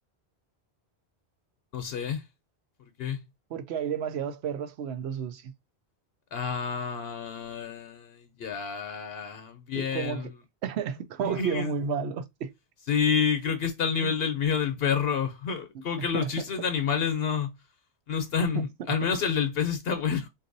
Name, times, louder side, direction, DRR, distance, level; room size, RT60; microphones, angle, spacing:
voice 1, 1.7-2.2 3.0-3.2 6.3-10.3 11.2-11.7 12.9-17.5 18.1-20.3, left 7 dB, 70° left, 0.8 m, -29 dB
voice 2, 3.5-5.5 9.8-10.3 10.6-12.5 14.0-14.2 16.0-16.4 18.5-18.7, right 7 dB, 80° right, 0.9 m, -32 dB
4.0 x 2.6 x 2.5 m
omnidirectional pair, 1.1 m